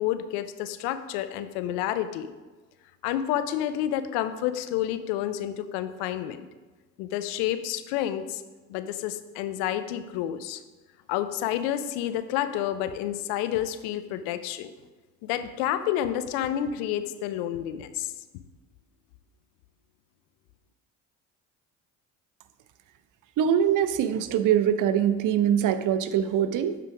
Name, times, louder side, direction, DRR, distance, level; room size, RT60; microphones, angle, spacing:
voice 1, 0.0-2.3 3.0-6.5 7.0-8.4 8.7-10.6 11.1-14.7 15.2-18.1, left 11 dB, 75° left, 11 dB, 0.6 m, -29 dB
voice 2, 23.4-26.8, right 9 dB, 55° right, 12 dB, 0.6 m, -23 dB
9.0 x 3.8 x 4.9 m, 1.2 s
hypercardioid pair, 60°, 39 cm